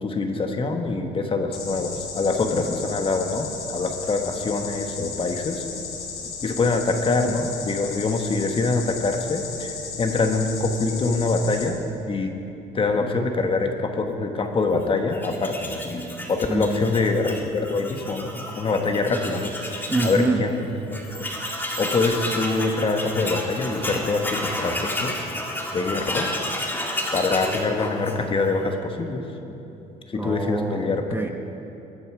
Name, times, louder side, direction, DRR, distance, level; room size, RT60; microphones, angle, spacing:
voice 1, 0.0-5.6 6.4-11.8 12.1-12.3 12.7-19.5 20.0-21.2 21.8-25.2 25.7-26.3 27.1-29.6 30.1-31.1, left 3 dB, 30° left, 5 dB, 1.3 m, -25 dB
sound 1, 1.5-11.6, left 5 dB, 80° left, 3.5 m, -35 dB
Tools, 15.1-20.2 20.6-20.7 20.9-28.5, left 1 dB, 10° left, 2.0 m, -31 dB
voice 2, 16.5-16.8 19.9-20.4 30.1-31.3, right 3 dB, 10° right, 3 dB, 1.0 m, -25 dB
22.5 x 9.7 x 4.9 m, 2.9 s
cardioid pair, 110°, 17 cm